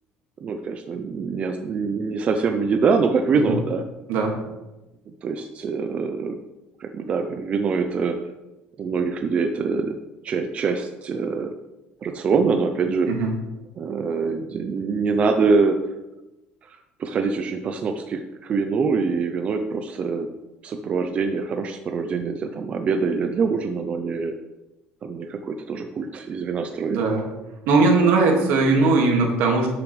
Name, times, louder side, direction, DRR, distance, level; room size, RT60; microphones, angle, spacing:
voice 1, 0.4-3.8 5.2-6.4 6.8-8.1 8.8-10.0 10.2-11.5 12.0-13.1 13.8-15.8 16.6-20.3 20.6-24.3 25.0-27.0, right 5 dB, 35° right, 5 dB, 0.6 m, -24 dB
voice 2, 26.9-27.2 27.7-29.7, right 3 dB, 75° right, 1 dB, 2.2 m, -19 dB
11.5 x 6.9 x 3.3 m, 1.0 s
cardioid pair, 145°, 4 cm